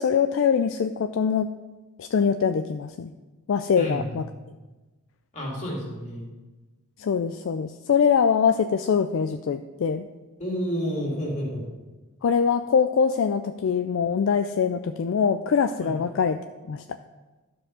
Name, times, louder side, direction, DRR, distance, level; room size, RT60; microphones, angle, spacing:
voice 1, 0.0-1.5 2.0-3.1 3.5-4.3 7.0-10.1 12.2-16.4 16.7-16.8, left 6 dB, 60° left, 9 dB, 0.3 m, -23 dB
voice 2, 3.7-4.2 5.3-6.3 10.4-11.7 15.8-16.0, equal, 30° left, -3 dB, 2.6 m, -30 dB
12.0 x 4.6 x 6.2 m, 1.2 s
head